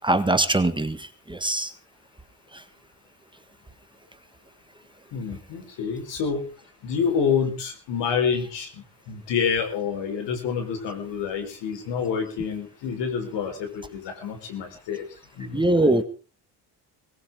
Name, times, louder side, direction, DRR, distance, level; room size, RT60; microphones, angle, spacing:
voice 1, 0.0-1.7 2.5-2.6 15.5-16.0, right 2 dB, 10° right, 10 dB, 1.6 m, -22 dB
voice 2, 5.1-6.4 6.8-15.1 15.3-15.9, left 6 dB, 80° left, 6 dB, 4.6 m, -28 dB
18.5 x 17.0 x 3.7 m, 0.36 s
cardioid pair, 95°, 42 cm